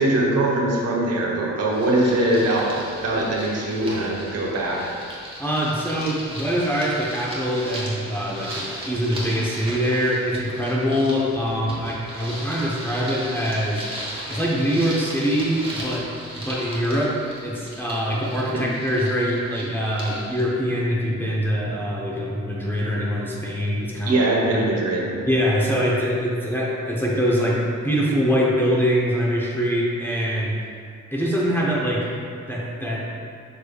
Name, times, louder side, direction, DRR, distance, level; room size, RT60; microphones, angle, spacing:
voice 1, 0.0-2.7 3.0-4.8 18.5-18.6 24.0-25.1, right 1 dB, 55° right, -3 dB, 0.9 m, -22 dB
sound 1, 1.7-20.4, right 1 dB, 20° right, 1.1 m, -37 dB
voice 2, 5.4-13.9 14.3-16.1 16.5-24.3 24.5-24.6 25.3-30.6 31.1-32.1 32.5-33.1, equal, 5° left, -5 dB, 0.7 m, -23 dB
6.4 x 3.3 x 2.3 m, 2.3 s
cardioid pair, 90°, 30 cm